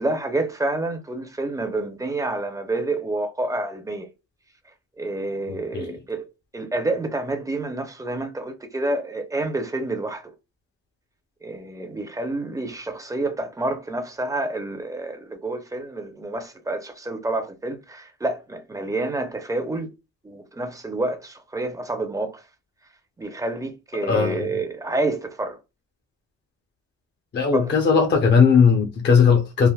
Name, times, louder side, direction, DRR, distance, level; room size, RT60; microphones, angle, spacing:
voice 1, 0.0-4.1 5.0-6.2 6.5-10.3 11.4-19.9 20.2-22.4 23.2-25.6 27.5-27.8, right 2 dB, 10° right, 0.6 m, -28 dB
voice 2, 5.5-5.9 24.1-24.5 27.3-29.7, left 6 dB, 35° left, 0.6 m, -18 dB
3.4 x 2.1 x 2.2 m
cardioid pair, 90°, 30 cm